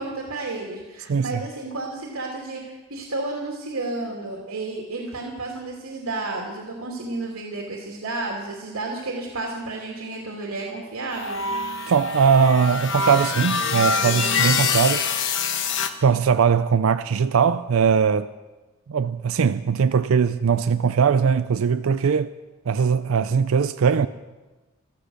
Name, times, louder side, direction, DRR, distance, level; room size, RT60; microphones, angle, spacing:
voice 1, 0.0-11.4, right 2 dB, 85° right, 2.9 m, -32 dB
voice 2, 1.1-1.4 11.9-15.1 16.0-18.3 18.9-22.3 22.7-24.1, right 6 dB, 70° right, 0.4 m, -20 dB
sound 1, 11.1-15.9, left 4 dB, 60° left, 1.1 m, -24 dB
15.0 x 14.0 x 6.6 m
head